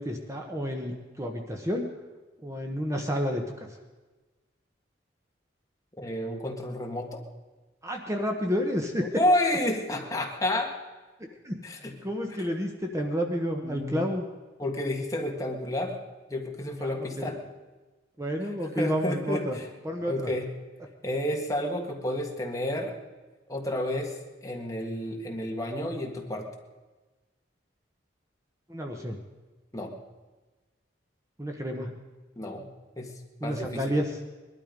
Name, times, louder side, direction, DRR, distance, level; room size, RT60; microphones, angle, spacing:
voice 1, 0.0-1.9 2.4-3.4 7.8-9.0 11.2-11.6 12.0-14.2 16.8-17.3 18.2-19.6 19.8-20.3 28.7-29.2 31.4-31.9 33.4-34.2, equal, 15° right, 2 dB, 1.1 m, -30 dB
voice 2, 6.0-7.2 9.2-10.7 11.6-12.0 13.6-14.1 14.6-16.0 16.3-17.4 18.8-19.7 20.1-20.5 21.0-23.0 23.5-24.2 24.4-26.5 29.7-29.9 32.4-32.7 33.0-33.1 33.4-34.0, left 1 dB, 20° left, 1 dB, 1.7 m, -30 dB
21.0 x 12.0 x 5.2 m, 1.2 s
head